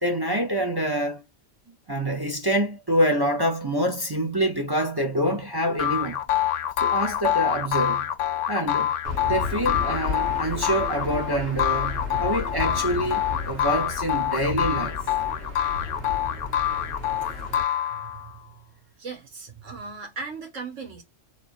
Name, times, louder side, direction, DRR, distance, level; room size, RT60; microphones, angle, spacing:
voice 1, 0.0-1.2 1.9-6.2 6.8-8.1 8.5-9.0 9.3-15.0, equal, 25° right, 0.6 m, -26 dB
sound 1, 5.8-18.3, left 11 dB, 75° left, 1.0 m, -26 dB
Aircraft / Engine, 9.0-17.6, left 3 dB, 85° right, 1.9 m, -33 dB
voice 2, 19.0-21.0, right 4 dB, 70° right, 1.8 m, -37 dB
3.7 x 3.3 x 2.4 m
omnidirectional pair, 1.3 m